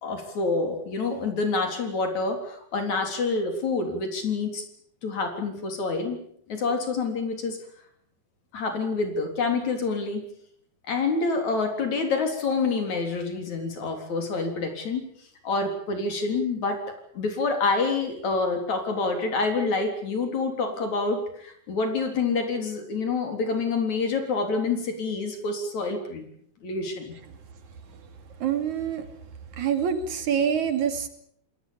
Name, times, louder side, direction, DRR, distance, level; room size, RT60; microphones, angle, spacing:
voice 1, 0.0-4.7 5.0-6.2 6.5-7.6 8.5-10.3 10.9-15.1 15.4-16.8 17.2-26.3 26.6-27.2, left 4 dB, 70° left, 5 dB, 5.1 m, -27 dB
voice 2, 28.4-29.1 29.5-31.1, right 8 dB, 75° right, 8 dB, 3.9 m, -26 dB
29.0 x 20.0 x 7.2 m, 0.66 s
omnidirectional pair, 3.4 m